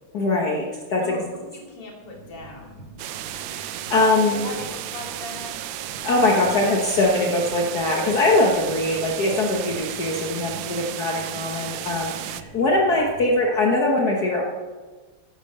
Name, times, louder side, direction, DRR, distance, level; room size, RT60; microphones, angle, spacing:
voice 1, 0.1-1.0 3.5-4.5 6.0-14.4, left 2 dB, 50° left, -1 dB, 1.6 m, -22 dB
voice 2, 1.0-2.8 3.9-5.6 10.6-10.9, left 3 dB, 90° left, 0 dB, 3.5 m, -39 dB
sound 1, 2.0-13.3, right 2 dB, 90° right, 5.7 m, -45 dB
sound 2, 3.0-12.4, right 12 dB, 75° right, 1.2 m, -34 dB
12.0 x 8.6 x 6.7 m, 1.4 s
omnidirectional pair, 2.4 m